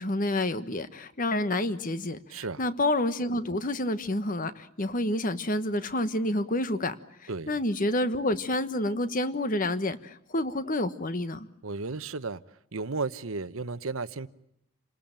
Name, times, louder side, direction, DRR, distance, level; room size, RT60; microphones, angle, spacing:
voice 1, 0.0-6.9 7.2-11.5, left 1 dB, 40° left, 1.3 m, -29 dB
voice 2, 2.3-2.6 7.3-7.5 11.6-12.4 12.7-14.3, right 3 dB, 75° right, 1.0 m, -33 dB
29.0 x 20.0 x 9.0 m
head